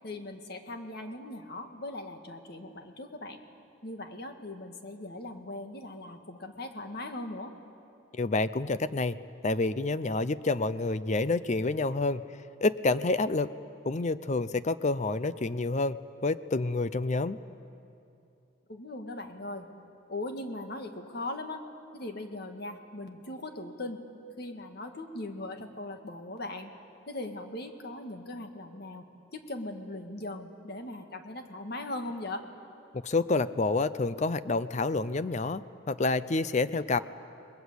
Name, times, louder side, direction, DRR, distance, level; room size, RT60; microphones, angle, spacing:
voice 1, 0.0-3.4 3.8-7.5 18.7-19.7 20.1-21.6 21.9-24.0 24.4-26.7 27.1-32.4, left 2 dB, 55° left, 5 dB, 1.9 m, -39 dB
voice 2, 8.1-9.2 9.4-12.2 12.6-13.5 13.9-17.4 33.0-37.0, left 3 dB, 35° left, 14 dB, 0.5 m, -28 dB
28.5 x 21.0 x 8.1 m, 2.7 s
head